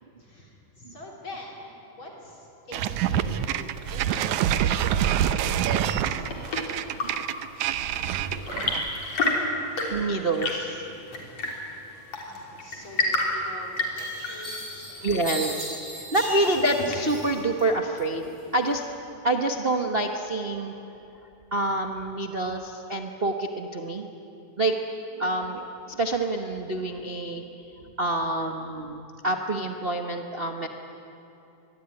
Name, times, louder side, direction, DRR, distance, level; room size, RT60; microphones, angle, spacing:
voice 1, 0.2-7.0 11.2-11.5 12.2-15.1, left 1 dB, 40° left, -1 dB, 4.1 m, -45 dB
sound 1, 2.7-9.0, right 10 dB, 80° right, 2.2 m, -26 dB
Chirp tweet / Engine / Tap, 5.9-17.4, left 2 dB, 60° left, 4.7 m, -31 dB
voice 2, 9.9-10.9 15.0-18.8 19.2-20.7 21.5-24.1 24.6-24.8 25.1-27.4 28.0-30.7, right 2 dB, 55° right, 3 dB, 0.6 m, -27 dB
sound 2, 13.2-13.3 14.0-17.6 18.0-18.7, right 1 dB, 35° right, 7.8 m, -37 dB
26.0 x 21.5 x 9.9 m, 2.9 s
omnidirectional pair, 3.3 m